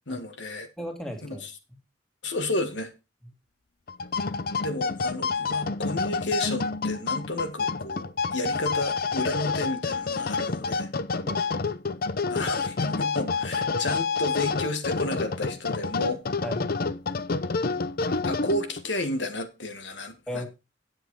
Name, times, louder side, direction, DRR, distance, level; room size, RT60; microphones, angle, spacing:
voice 1, 0.1-0.7 1.2-1.5 2.2-2.9 4.6-10.9 12.3-16.2 18.2-20.4, left 2 dB, 70° left, 1.7 m, -32 dB
voice 2, 0.8-1.4 1.7-1.8 11.2-11.4 16.4-16.9 20.3-20.5, equal, 5° left, 2.4 m, -35 dB
sound 1, 3.9-18.9, left 4 dB, 55° left, 0.7 m, -28 dB
9.6 x 8.0 x 4.8 m
head